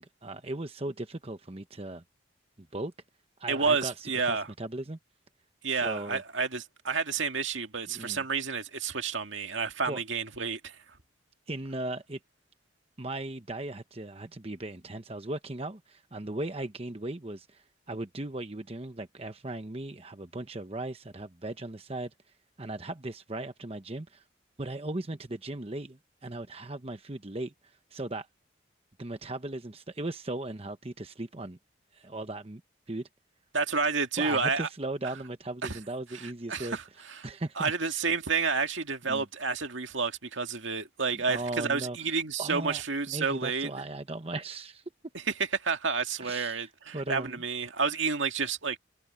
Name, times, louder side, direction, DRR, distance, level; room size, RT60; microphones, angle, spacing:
voice 1, 0.0-2.0 2.7-2.9 3.4-5.0 5.7-6.2 7.9-8.2 9.9-10.0 11.5-12.2 13.0-22.1 22.6-24.2 24.6-27.5 27.9-28.3 29.0-31.6 31.9-32.6 32.9-33.1 34.2-36.8 37.2-38.0 39.1-39.2 41.3-42.1 42.4-44.8 46.2-47.4, right 2 dB, 30° right, 1.0 m, -37 dB
voice 2, 3.5-4.5 5.6-10.8 33.5-34.7 35.6-35.8 36.1-36.8 37.1-37.3 37.6-43.7 45.1-45.2 45.5-48.8, right 5 dB, 75° right, 2.0 m, -30 dB
head